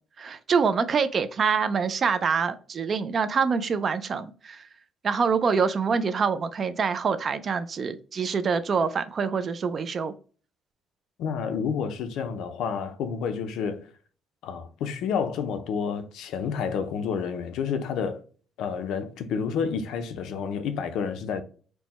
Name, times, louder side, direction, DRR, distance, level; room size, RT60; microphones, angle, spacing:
voice 1, 0.2-4.7 5.0-10.1, right 5 dB, 30° right, 0.3 m, -25 dB
voice 2, 11.2-13.9 14.4-18.2 18.6-21.4, left 6 dB, 75° left, 0.5 m, -29 dB
4.5 x 2.1 x 4.0 m
cardioid pair, 180°, 0 cm